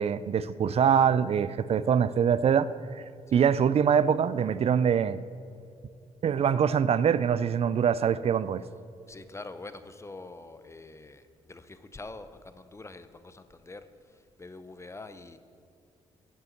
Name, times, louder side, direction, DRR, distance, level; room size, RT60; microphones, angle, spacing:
voice 1, 0.0-2.7 3.0-3.1 3.3-5.2 6.2-8.6, right 7 dB, 50° right, 0.4 m, -24 dB
voice 2, 9.1-11.2 11.5-13.9 14.4-15.4, left 3 dB, 20° left, 0.7 m, -45 dB
9.3 x 5.5 x 7.1 m
supercardioid pair, 55°, 13 cm